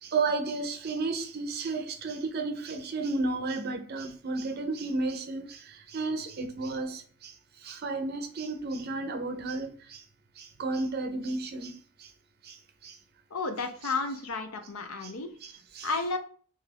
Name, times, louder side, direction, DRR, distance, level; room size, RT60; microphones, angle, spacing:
voice 1, 0.0-7.3 7.6-10.0 10.4-12.1 12.4-12.6 12.8-13.0 13.8-13.9 15.0-15.1 15.4-15.9, right 3 dB, 50° right, 0.5 m, -33 dB
voice 2, 13.3-15.3 15.8-16.2, left 3 dB, 85° left, 0.6 m, -32 dB
2.8 x 2.3 x 3.3 m
head